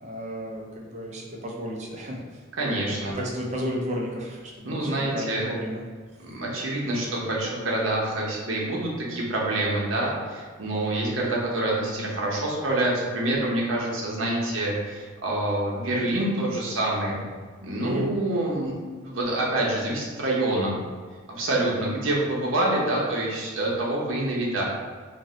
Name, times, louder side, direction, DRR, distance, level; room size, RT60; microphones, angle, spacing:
voice 1, 0.0-2.2 2.7-5.8 17.8-18.1, equal, 35° right, -1 dB, 0.4 m, -33 dB
voice 2, 2.6-3.2 4.6-5.5 6.2-17.2 17.6-20.8 21.3-24.6, right 1 dB, 75° right, -3 dB, 0.7 m, -26 dB
2.6 x 2.1 x 3.7 m, 1.5 s
head